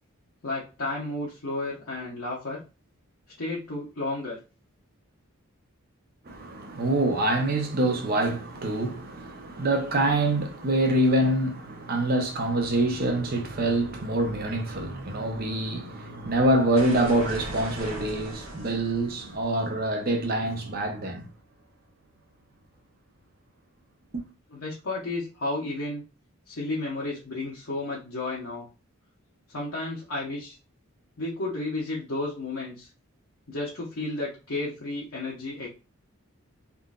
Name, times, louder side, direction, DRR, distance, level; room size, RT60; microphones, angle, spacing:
voice 1, 0.4-2.6 3.4-4.4 24.5-26.0 26.5-28.7 29.5-30.6 31.2-32.9 33.5-35.7, left 2 dB, 70° left, 0.9 m, -32 dB
voice 2, 6.3-21.3, right 1 dB, 45° right, 0.7 m, -25 dB
sound 1, 16.7-21.5, right 2 dB, 70° right, 1.0 m, -40 dB
3.6 x 2.5 x 2.3 m
head